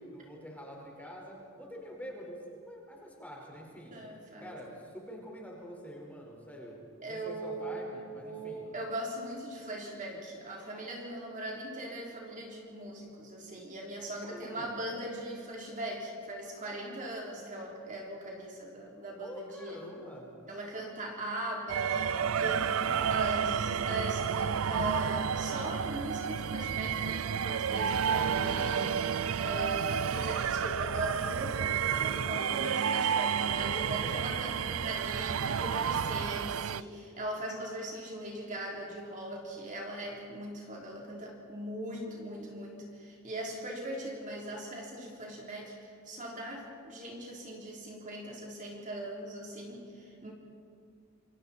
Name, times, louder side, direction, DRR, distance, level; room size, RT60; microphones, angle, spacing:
voice 1, 0.1-3.9 4.4-6.8 7.1-8.7 14.2-14.7 19.2-20.3 22.9-23.8 32.3-32.5 34.0-34.4, equal, 10° left, -2 dB, 5.0 m, -46 dB
voice 2, 3.9-4.6 7.0-19.8 20.5-50.3, right 1 dB, 40° right, -2 dB, 3.8 m, -40 dB
witches dance, 21.7-36.8, right 7 dB, 85° right, 0.5 m, -31 dB
28.0 x 26.0 x 4.4 m, 2.5 s
head